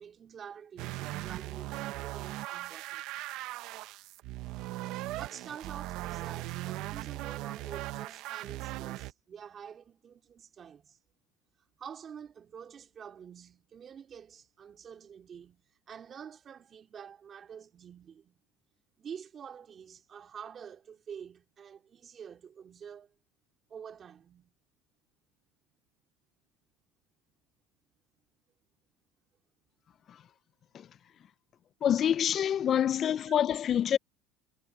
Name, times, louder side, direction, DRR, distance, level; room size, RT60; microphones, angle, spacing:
voice 1, 0.0-3.0 5.2-11.0 11.8-18.4 19.0-23.1 23.7-24.5, right 7 dB, 35° right, 2.7 m, -48 dB
sound 1, 0.8-9.1, right 17 dB, 65° right, 1.1 m, -39 dB
voice 2, 31.8-34.0, left 9 dB, 40° left, 0.5 m, -27 dB
supercardioid pair, 110°, 0 cm